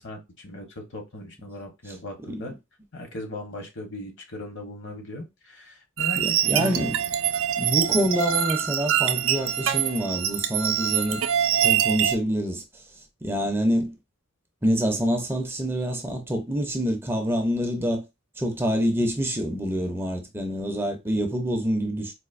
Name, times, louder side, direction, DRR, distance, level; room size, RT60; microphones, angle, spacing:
voice 1, 0.0-2.5 2.9-6.6 7.9-8.1, left 1 dB, 65° left, 1.1 m, -38 dB
sound 1, 6.0-12.2, right 10 dB, 70° right, 0.4 m, -24 dB
voice 2, 6.2-7.0 7.6-11.2 11.6-12.6 13.2-13.9 14.6-18.0 18.4-22.1, equal, 10° right, 0.5 m, -26 dB
4.0 x 2.5 x 2.4 m
head